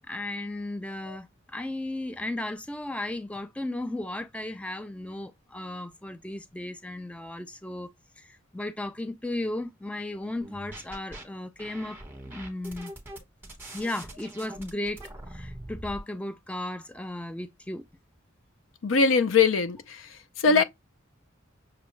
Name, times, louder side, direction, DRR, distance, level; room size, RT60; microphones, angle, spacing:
voice 1, 0.1-7.9 8.2-12.0 12.2-12.9 13.7-15.0 15.3-17.8 20.5-20.6, left 1 dB, 5° left, 0.3 m, -35 dB
sound 1, 10.4-11.2 11.6-16.0, right 1 dB, 10° right, 1.1 m, -43 dB
voice 2, 18.8-20.0 20.4-20.6, left 5 dB, 80° left, 0.5 m, -21 dB
5.9 x 2.2 x 3.1 m
head